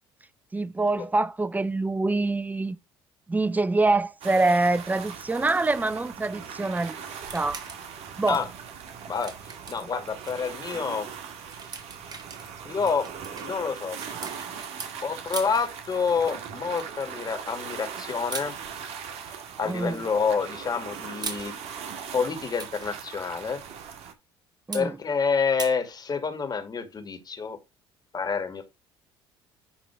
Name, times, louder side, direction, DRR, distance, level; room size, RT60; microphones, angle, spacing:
voice 1, 0.5-2.8 3.3-7.0 7.3-7.6 8.2-8.4 9.8-9.9 19.6-20.1 24.7-25.0, right 2 dB, 15° right, 0.7 m, -25 dB
sound 1, 4.2-24.1, right 7 dB, 65° right, 2.0 m, -40 dB
sound 2, 7.2-7.9 8.2-10.4 10.7-10.9 11.3-14.9 15.3-15.7 16.8-17.1 18.3-18.5 19.7-20.1 20.9-21.5 22.3-22.9 24.7-24.9 25.6-25.8, right 4 dB, 35° right, 2.5 m, -40 dB
voice 2, 9.7-11.1 12.7-13.1 13.4-14.0 15.0-18.5 19.6-21.6 22.1-23.6 24.7-27.6 28.1-28.6, left 5 dB, 35° left, 2.4 m, -28 dB
10.5 x 3.8 x 4.7 m
hypercardioid pair, 70°, 12 cm